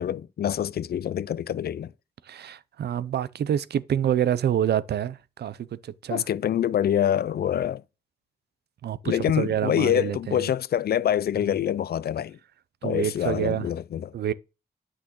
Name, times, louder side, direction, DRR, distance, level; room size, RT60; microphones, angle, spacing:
voice 1, 0.0-1.9 6.1-7.8 9.0-12.4 12.8-14.1, left 10 dB, 65° left, 0.5 m, -26 dB
voice 2, 2.3-5.6 5.8-6.2 8.8-10.4 12.8-13.7 14.1-14.3, right 10 dB, 75° right, 0.6 m, -27 dB
8.4 x 6.2 x 3.1 m
supercardioid pair, 45°, 17 cm